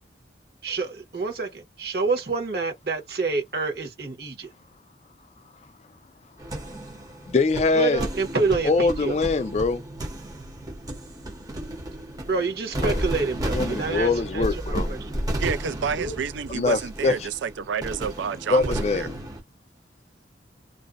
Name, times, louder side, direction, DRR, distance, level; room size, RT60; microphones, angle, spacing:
voice 1, 0.6-4.5 7.7-9.2 12.2-15.1 16.0-16.1, right 4 dB, 60° right, 0.9 m, -27 dB
sound 1, 6.4-19.4, right 1 dB, 20° right, 0.6 m, -32 dB
voice 2, 7.3-8.0 8.6-9.8 12.8-13.0 13.5-14.9 16.5-17.1 18.5-19.1, left 3 dB, 35° left, 0.3 m, -23 dB
voice 3, 15.4-19.1, right 6 dB, 85° right, 0.4 m, -29 dB
2.5 x 2.0 x 2.4 m
head